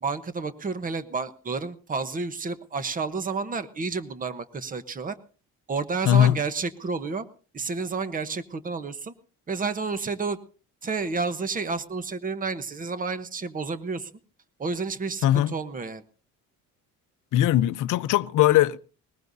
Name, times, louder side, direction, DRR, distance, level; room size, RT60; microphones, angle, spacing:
voice 1, 0.0-5.2 5.7-7.3 7.5-9.1 9.5-10.4 10.8-14.2 14.6-16.0, right 4 dB, 25° right, 1.0 m, -30 dB
voice 2, 6.1-6.4 15.2-15.5 17.3-18.8, left 12 dB, 65° left, 0.6 m, -20 dB
21.0 x 20.5 x 2.7 m
cardioid pair, 140°, 33 cm